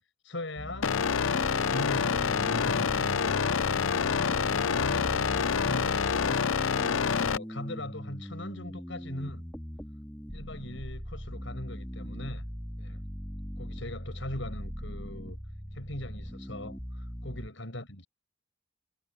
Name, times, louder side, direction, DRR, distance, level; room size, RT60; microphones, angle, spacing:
voice 1, 0.2-1.0 1.4-3.4 4.3-6.4 6.7-9.5 10.3-12.4 12.8-13.0 13.6-15.4 15.7-18.1, left 1 dB, 75° left, 6.2 m, -40 dB
sound 1, 0.6-17.5, equal, 5° left, 3.6 m, -40 dB
sound 2, 0.8-7.4, left 6 dB, 90° left, 0.6 m, -27 dB
head